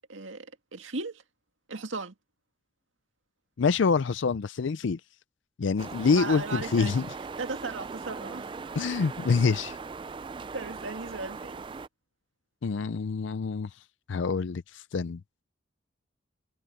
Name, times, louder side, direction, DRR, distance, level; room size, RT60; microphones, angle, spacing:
voice 1, 0.1-1.2 1.7-2.1 6.1-7.0 7.4-8.5 10.5-11.6, right 3 dB, 85° right, 2.0 m, -36 dB
voice 2, 3.6-5.0 5.6-7.1 8.8-9.8 12.6-13.7 14.1-15.2, left 5 dB, 75° left, 0.5 m, -26 dB
sound 1, 5.8-11.9, right 4 dB, 25° right, 0.3 m, -39 dB
head